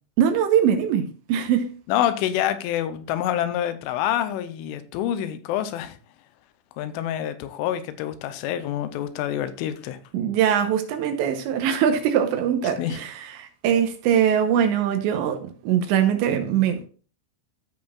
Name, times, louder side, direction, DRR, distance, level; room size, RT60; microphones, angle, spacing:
voice 1, 0.2-1.7 10.1-16.9, right 9 dB, 75° right, 3.0 m, -22 dB
voice 2, 1.9-6.0 6.8-10.0 12.8-13.0, left 11 dB, 90° left, 3.2 m, -27 dB
15.0 x 5.3 x 2.4 m
omnidirectional pair, 5.5 m